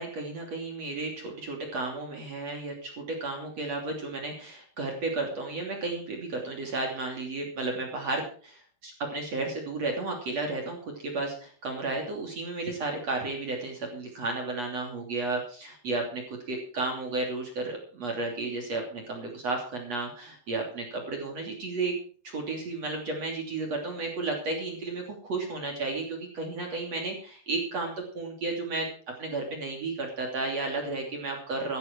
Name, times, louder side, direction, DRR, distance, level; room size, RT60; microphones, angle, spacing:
voice 1, 0.0-16.2 16.5-21.9 22.2-28.9 29.2-31.8, right 3 dB, 35° right, 1 dB, 3.4 m, -33 dB
16.0 x 11.5 x 4.6 m, 0.43 s
omnidirectional pair, 5.7 m